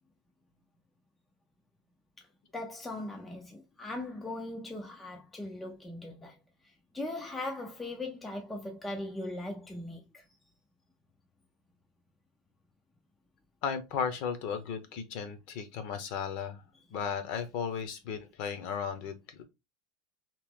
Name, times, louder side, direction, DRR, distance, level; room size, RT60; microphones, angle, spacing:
voice 1, 2.5-10.2, left 2 dB, 5° left, 0.3 m, -39 dB
voice 2, 13.6-16.6 16.9-19.4, left 6 dB, 40° left, 0.7 m, -35 dB
2.9 x 2.8 x 3.5 m
supercardioid pair, 180°, 3 cm